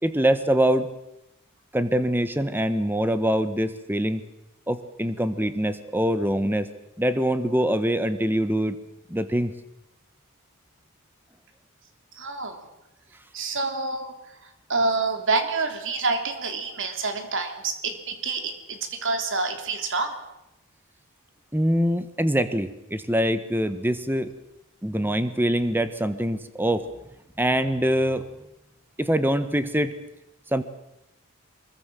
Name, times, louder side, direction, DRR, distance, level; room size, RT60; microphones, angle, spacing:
voice 1, 0.0-0.9 1.7-4.2 4.7-6.7 7.0-8.8 9.1-9.5 21.5-24.3 24.8-26.8 27.4-28.2 29.0-29.9 30.5-30.6, equal, 10° right, 11 dB, 1.4 m, -24 dB
voice 2, 12.1-12.7 13.3-20.2, right 3 dB, 60° right, 7 dB, 3.3 m, -28 dB
24.0 x 21.5 x 7.7 m, 0.87 s
head